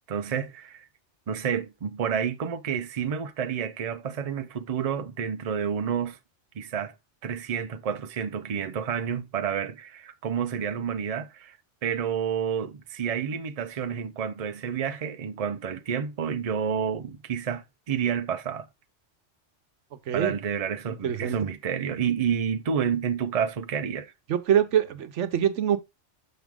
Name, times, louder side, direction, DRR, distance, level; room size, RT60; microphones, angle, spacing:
voice 1, 0.1-0.9 1.3-6.2 6.5-6.9 7.2-11.6 11.8-18.7 20.1-24.1, right 7 dB, 40° right, 0.6 m, -29 dB
voice 2, 21.0-21.4 24.3-25.8, right 9 dB, 90° right, 1.1 m, -24 dB
6.4 x 6.1 x 3.5 m
omnidirectional pair, 1.2 m